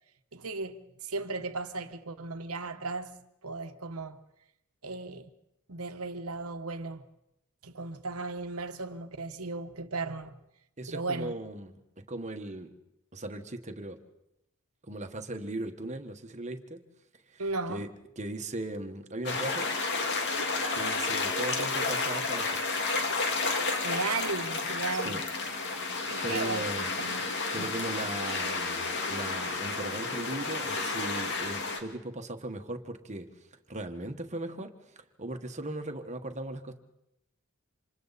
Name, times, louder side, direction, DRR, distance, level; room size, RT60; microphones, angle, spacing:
voice 1, 0.3-3.2 3.4-4.2 4.8-5.3 5.7-7.0 7.6-10.4 10.9-11.3 17.4-17.9 23.8-25.2 26.1-26.7 27.0-27.7, right 3 dB, 80° right, 1.2 m, -36 dB
voice 2, 10.8-11.8 12.1-12.7 13.1-14.0 14.8-16.8 17.3-17.9 18.2-19.7 20.7-22.5 24.9-25.2 26.2-26.9 27.5-33.3 33.7-34.7 35.2-36.7, right 1 dB, 35° right, 1.4 m, -38 dB
sound 1, 19.2-31.8, left 3 dB, 55° left, 2.3 m, -31 dB
28.0 x 26.5 x 4.2 m
head